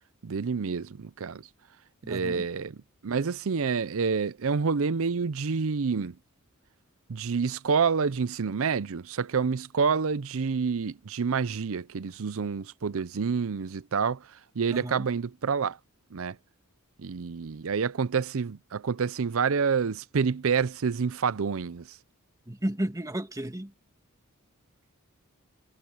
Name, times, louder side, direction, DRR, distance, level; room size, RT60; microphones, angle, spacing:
voice 1, 0.2-1.5 2.1-2.8 3.0-6.2 7.1-14.3 14.6-15.8 16.1-16.4 17.0-22.0, right 5 dB, 70° right, 0.6 m, -28 dB
voice 2, 2.0-2.4 14.7-15.1 22.5-23.7, right 1 dB, 15° right, 1.9 m, -33 dB
head